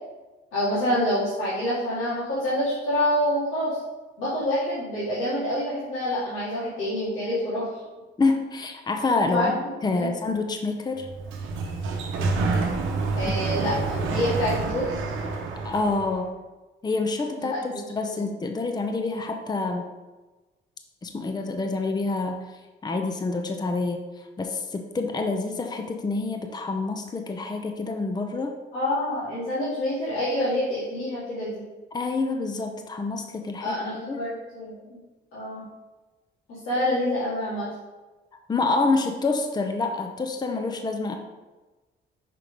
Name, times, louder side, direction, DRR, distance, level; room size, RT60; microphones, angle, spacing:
voice 1, 0.5-3.8 4.2-7.8 9.3-9.5 9.9-10.1 13.2-14.9 17.5-17.8 18.1-18.2 28.7-31.6 33.6-35.0 35.3-35.7 36.5-37.7, left 1 dB, 85° left, -10 dB, 1.9 m, -27 dB
voice 2, 8.2-9.5 9.8-11.1 13.2-13.3 15.6-16.3 16.8-19.9 21.0-28.6 31.9-34.2 38.5-41.2, left 3 dB, 20° left, 4 dB, 0.6 m, -27 dB
Sliding door, 11.0-16.2, right 3 dB, 90° right, 0.8 m, -28 dB
5.8 x 3.4 x 5.2 m, 1.2 s
cardioid pair, 90°, 20 cm